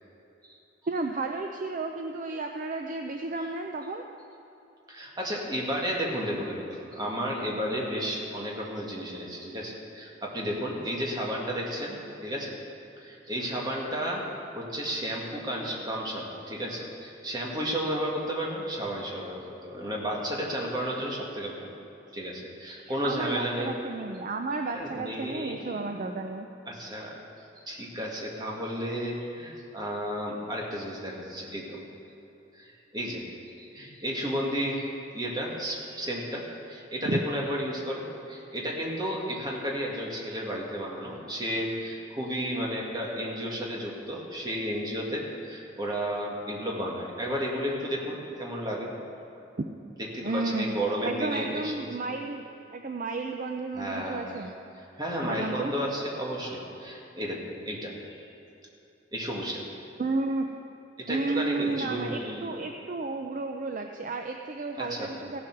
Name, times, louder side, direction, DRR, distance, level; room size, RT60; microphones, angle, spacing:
voice 1, 0.9-4.0 22.9-26.5 37.0-37.2 50.2-52.4 52.7-54.5 55.2-55.7 60.0-60.5 61.1-65.4, right 3 dB, 45° right, 4 dB, 0.5 m, -32 dB
voice 2, 4.9-12.6 13.0-14.2 14.6-21.7 22.1-23.7 24.7-26.0 26.7-27.2 27.7-31.8 32.6-33.2 33.6-34.9 35.1-48.9 50.0-52.1 53.7-54.4 55.0-58.2 59.1-59.6 61.1-62.5 64.8-65.1, equal, 20° right, -3 dB, 1.9 m, -33 dB
16.0 x 7.7 x 6.0 m, 2.8 s
head